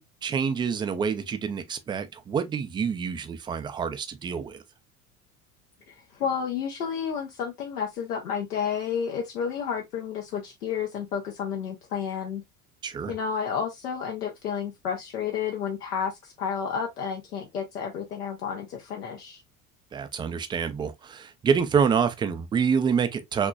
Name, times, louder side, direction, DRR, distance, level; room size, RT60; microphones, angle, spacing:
voice 1, 0.0-4.6 12.8-13.1 19.9-23.5, right 6 dB, 10° right, 0.3 m, -27 dB
voice 2, 5.9-12.4 13.1-19.4, left 7 dB, 75° left, 0.8 m, -31 dB
5.1 x 3.0 x 2.3 m
figure-of-eight pair, 70°, 47 cm